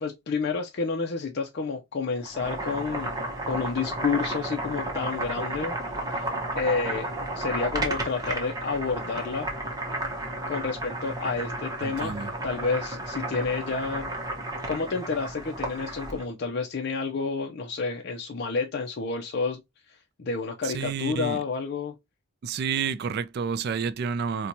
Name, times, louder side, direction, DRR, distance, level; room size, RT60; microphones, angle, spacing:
voice 1, 0.0-3.2 3.5-5.8 6.1-6.3 6.6-9.5 10.5-12.2 12.4-14.1 14.7-19.6 19.9-22.0, left 4 dB, 50° left, 0.5 m, -30 dB
Boiling, 2.2-16.3, right 2 dB, 20° right, 0.8 m, -33 dB
voice 2, 11.8-12.3 20.6-21.4 22.4-24.5, right 6 dB, 50° right, 0.3 m, -30 dB
4.3 x 2.2 x 2.6 m
head